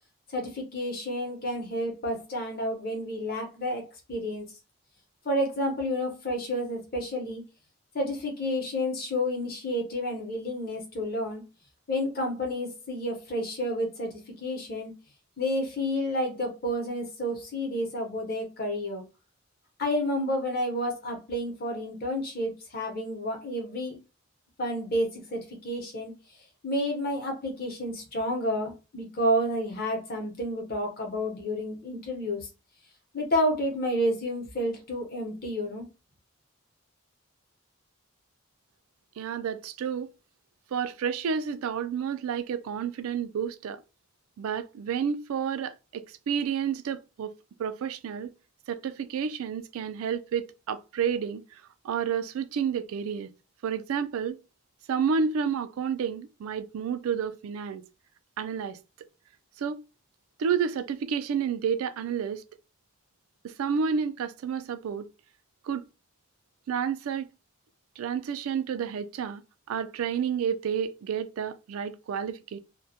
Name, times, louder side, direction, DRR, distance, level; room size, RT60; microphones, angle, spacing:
voice 1, 0.3-4.5 5.2-7.4 7.9-11.4 11.9-14.9 15.4-19.0 19.8-24.0 24.6-26.1 26.6-32.5 33.1-35.9, equal, 45° left, 0.7 m, -30 dB
voice 2, 39.2-40.1 40.7-43.8 44.4-47.3 47.6-48.3 48.7-53.3 53.6-54.4 54.9-57.8 58.4-58.8 59.6-59.8 60.4-62.4 63.4-65.1 65.6-65.8 66.7-67.3 68.0-69.4 69.7-72.6, right 7 dB, 80° right, 0.3 m, -30 dB
2.2 x 2.1 x 2.6 m
head